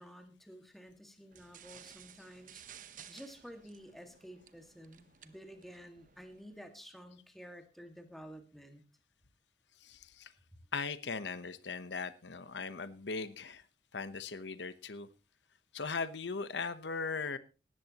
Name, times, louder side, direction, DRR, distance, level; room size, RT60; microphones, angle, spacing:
voice 1, 0.0-2.6 3.1-8.8, equal, ahead, 5 dB, 1.9 m, -52 dB
sound 1, 1.3-6.6, right 9 dB, 50° right, 0.9 m, -56 dB
voice 2, 9.8-10.3 10.7-13.6 13.9-15.1 15.7-17.4, left 4 dB, 85° left, 13 dB, 1.0 m, -39 dB
18.5 x 14.0 x 3.0 m, 0.32 s
head